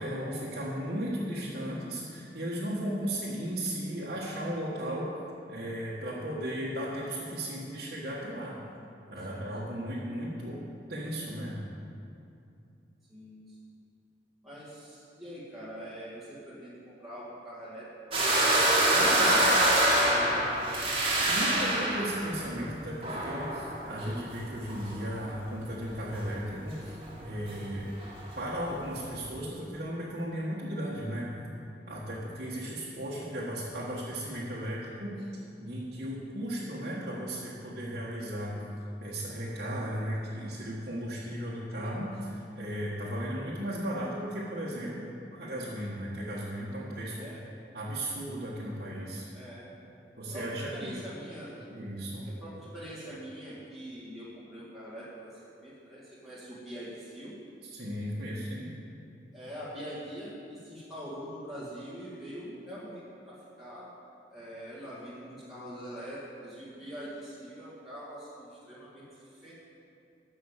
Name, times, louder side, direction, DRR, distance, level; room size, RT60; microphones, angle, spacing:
voice 1, 0.0-5.1 5.5-8.6 9.1-10.6 10.9-11.6 18.9-19.4 21.3-27.9 28.3-31.3 31.9-35.3 35.6-38.6 39.0-47.3 47.7-49.3 50.2-51.0 51.7-52.3 57.7-58.7, equal, 60° right, -8 dB, 1.6 m, -35 dB
voice 2, 13.1-13.6 14.4-18.2 18.9-20.9 47.1-47.4 49.3-49.7 50.3-51.7 52.2-57.3 59.3-63.9 64.3-69.5, equal, ahead, -11 dB, 2.5 m, -43 dB
sound 1, 18.1-25.2 25.5-26.5 26.7-26.8 27.0-29.3, right 1 dB, 30° right, 2.0 m, -26 dB
13.0 x 5.6 x 7.4 m, 2.6 s
head